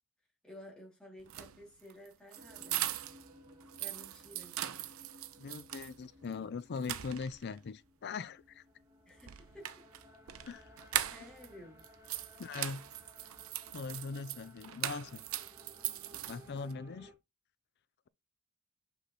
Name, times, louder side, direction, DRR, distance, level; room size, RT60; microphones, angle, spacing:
voice 1, 0.4-2.8 3.8-4.6 9.0-9.9 11.1-11.8 16.2-16.4, left 1 dB, 5° left, 3.2 m, -53 dB
sound 1, 1.2-3.3 3.6-5.9 6.3-6.4 6.8-7.6 9.2-11.5 11.8-16.7, right 12 dB, 85° right, 0.6 m, -40 dB
sound 2, 2.3-17.1, equal, 15° right, 2.4 m, -59 dB
voice 2, 5.4-8.6 10.4-10.7 12.4-12.9 13.7-15.2 16.3-17.1, left 4 dB, 55° left, 0.4 m, -41 dB
5.9 x 5.7 x 4.1 m
head